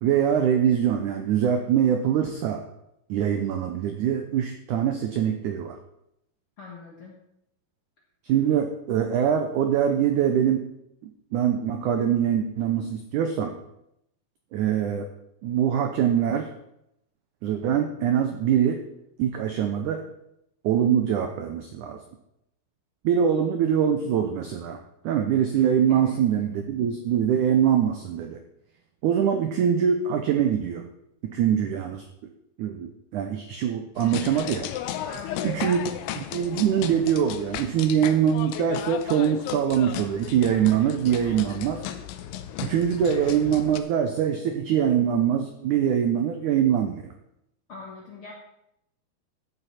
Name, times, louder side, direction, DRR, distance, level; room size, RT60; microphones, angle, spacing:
voice 1, 0.0-2.6 3.1-5.8 8.3-10.6 11.3-13.5 14.5-15.1 15.4-16.5 17.4-18.8 19.2-20.0 20.6-22.0 23.0-24.8 25.0-28.4 29.0-30.9 31.3-32.0 32.6-34.7 35.4-41.8 42.6-47.0, right 9 dB, 85° right, 6 dB, 1.7 m, -23 dB
voice 2, 6.6-7.1 25.9-26.3 35.0-35.7 47.7-48.3, left 4 dB, 55° left, -2 dB, 1.5 m, -42 dB
sound 1, 34.0-43.8, left 11 dB, 85° left, 2.7 m, -35 dB
13.5 x 9.0 x 4.3 m, 0.80 s
omnidirectional pair, 4.6 m